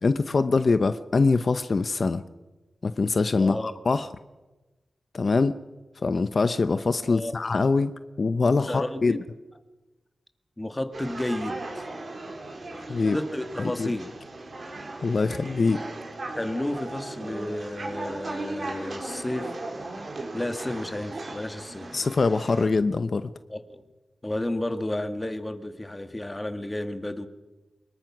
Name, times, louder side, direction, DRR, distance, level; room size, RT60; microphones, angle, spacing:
voice 1, 0.0-2.2 2.8-4.1 5.1-5.6 6.0-9.2 12.9-13.2 13.6-13.9 15.0-15.8 21.9-23.3, left 4 dB, 50° left, 11 dB, 0.8 m, -23 dB
voice 2, 3.3-3.8 7.0-7.3 8.4-9.3 10.6-11.9 13.0-14.1 16.3-19.6 20.3-22.0 23.5-23.8 24.2-27.3, left 1 dB, 15° left, 8 dB, 1.8 m, -32 dB
sound 1, 10.9-22.7, right 2 dB, 50° right, 5.0 m, -37 dB
24.0 x 21.5 x 6.1 m, 1.1 s
wide cardioid pair, 85°, 0 cm